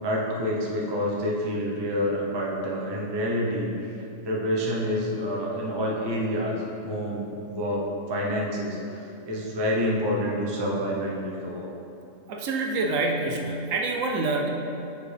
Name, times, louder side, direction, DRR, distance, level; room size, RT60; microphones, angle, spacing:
voice 1, 0.0-3.7 4.2-6.6 6.8-11.7, equal, 25° right, -3 dB, 0.6 m, -28 dB
voice 2, 12.3-14.5, right 3 dB, 75° right, 1 dB, 0.9 m, -26 dB
7.1 x 4.6 x 3.3 m, 2.8 s
omnidirectional pair, 1.4 m